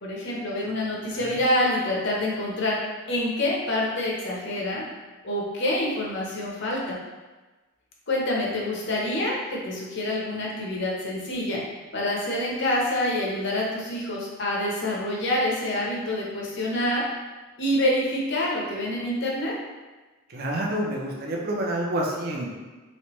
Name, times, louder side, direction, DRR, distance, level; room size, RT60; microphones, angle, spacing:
voice 1, 0.0-2.8 3.1-4.8 5.2-7.0 8.1-11.6 11.9-17.0 17.6-19.5, left 1 dB, 60° left, -3 dB, 0.8 m, -26 dB
voice 2, 1.1-1.4 20.3-22.5, right 1 dB, 50° right, -1 dB, 0.6 m, -28 dB
3.2 x 3.2 x 3.0 m, 1.2 s
head